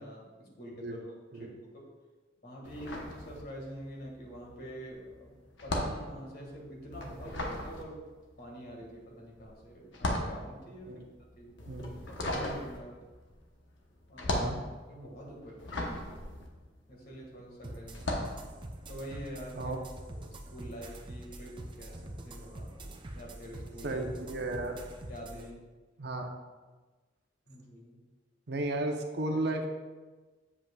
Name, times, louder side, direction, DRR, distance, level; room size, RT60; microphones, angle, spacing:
voice 1, 0.0-1.9 2.4-5.3 5.6-8.0 8.4-11.0 11.4-11.5 12.1-13.0 14.1-14.5 14.9-16.0 16.9-18.2 18.9-19.7 20.1-24.0 25.1-25.6 27.5-28.0 29.3-29.4, equal, 55° left, -2 dB, 1.8 m, -46 dB
sound 1, 2.6-3.9 4.1-17.3 17.9-18.4, left 1 dB, 70° left, 1.0 m, -36 dB
sound 2, 17.6-25.4, right 1 dB, 25° right, 0.6 m, -45 dB
voice 2, 23.8-24.9 26.0-26.4 28.5-29.7, right 2 dB, 60° right, 3 dB, 0.7 m, -34 dB
7.8 x 7.3 x 2.3 m, 1.3 s
head